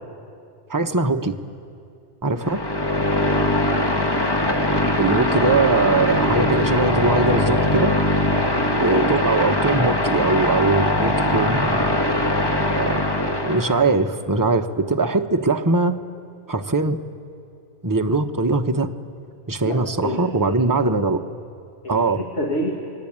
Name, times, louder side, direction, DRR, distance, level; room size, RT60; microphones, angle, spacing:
voice 1, 0.7-1.3 2.2-2.6 5.0-7.9 8.7-11.8 12.7-16.0 16.5-17.0 17.8-18.9 19.5-21.2 21.9-22.2, right 3 dB, 20° right, 6 dB, 0.9 m, -21 dB
sound 1, 2.4-13.9, left 1 dB, 20° left, 1.6 m, -21 dB
voice 2, 3.2-3.7 8.2-8.5 19.6-20.6 21.8-22.7, equal, 80° left, -1 dB, 2.7 m, -29 dB
30.0 x 22.0 x 8.8 m, 2.5 s
omnidirectional pair, 1.2 m